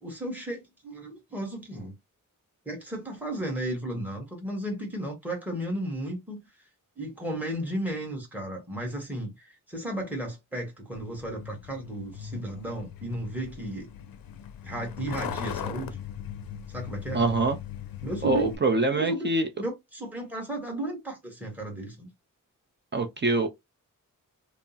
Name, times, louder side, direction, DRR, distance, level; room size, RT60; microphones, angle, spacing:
voice 1, 0.0-1.9 2.6-6.4 7.0-13.9 14.6-16.0 16.7-17.2 18.0-18.5 18.9-19.3 19.6-22.1, right 1 dB, 5° right, 1.4 m, -34 dB
Truck, 11.0-18.6, left 9 dB, 90° left, 0.5 m, -39 dB
voice 2, 17.1-17.6 18.2-19.5 22.9-23.5, right 3 dB, 30° right, 0.6 m, -24 dB
3.3 x 2.0 x 2.7 m
cardioid pair, 75°, 34 cm